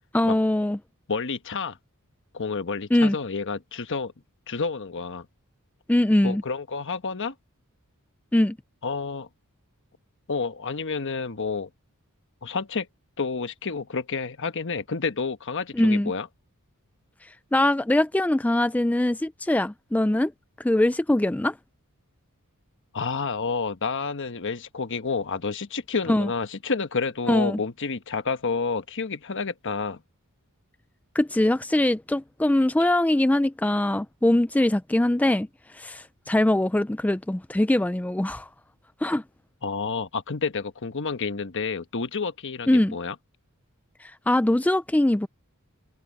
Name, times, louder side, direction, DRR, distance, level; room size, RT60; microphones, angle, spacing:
voice 1, 0.1-0.8 2.9-3.2 5.9-6.4 8.3-8.6 15.7-16.1 17.2-20.3 20.6-21.6 26.1-26.3 27.3-27.6 31.2-35.5 35.7-38.5 39.0-39.2 42.7-43.0 44.0-45.3, left 1 dB, 5° left, 0.4 m, -22 dB
voice 2, 1.1-1.8 2.3-4.1 4.5-5.3 6.2-7.3 8.8-9.3 10.3-11.7 12.4-12.9 13.2-16.3 22.9-30.0 39.6-43.1, left 4 dB, 60° left, 1.2 m, -29 dB
head